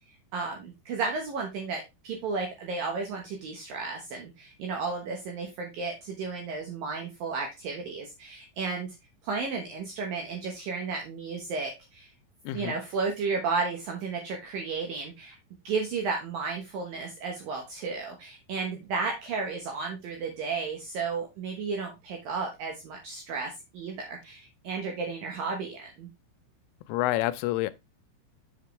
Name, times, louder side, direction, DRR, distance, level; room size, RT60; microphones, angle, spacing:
voice 1, 0.3-8.9 9.2-12.1 12.5-15.4 15.6-26.1, right 4 dB, 70° right, 2.2 m, -33 dB
voice 2, 12.5-12.8 26.9-27.7, left 16 dB, 90° left, 3.2 m, -28 dB
7.6 x 6.8 x 3.1 m
omnidirectional pair, 5.5 m